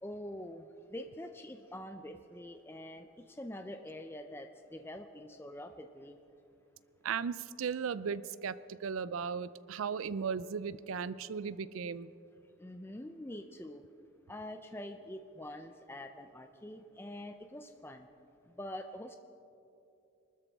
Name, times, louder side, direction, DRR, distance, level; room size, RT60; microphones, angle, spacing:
voice 1, 0.0-6.2 12.6-13.8 14.3-18.1 18.6-19.2, left 1 dB, 10° left, 6 dB, 0.4 m, -45 dB
voice 2, 7.0-12.1, right 6 dB, 90° right, 17 dB, 0.4 m, -36 dB
24.0 x 13.0 x 3.5 m, 2.9 s
head